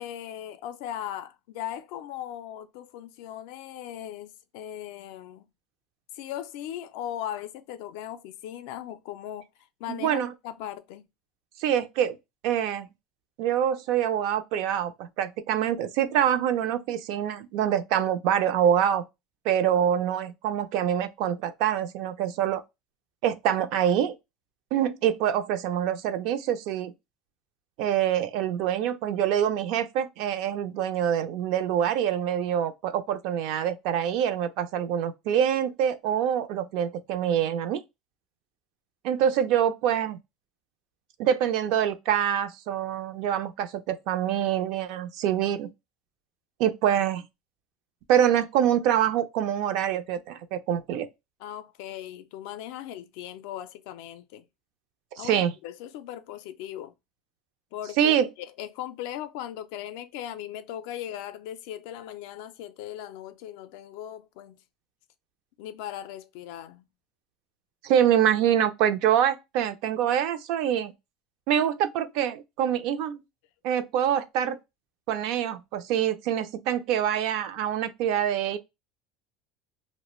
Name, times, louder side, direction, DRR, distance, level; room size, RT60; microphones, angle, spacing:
voice 1, 0.0-5.4 6.1-9.5 9.8-11.1 51.4-54.5 55.2-56.9 57.7-64.6 65.6-66.8, left 11 dB, 75° left, 0.4 m, -38 dB
voice 2, 9.9-10.3 11.6-12.2 12.4-12.9 13.4-19.0 19.4-22.6 23.2-24.1 24.7-26.9 27.8-37.8 39.0-40.2 41.2-45.7 46.6-47.2 48.1-51.1 55.2-55.5 58.0-58.3 67.8-70.9 71.5-73.2 73.6-74.6 75.1-78.6, right 9 dB, 65° right, 0.4 m, -25 dB
2.4 x 2.1 x 2.9 m
cardioid pair, 145°, 0 cm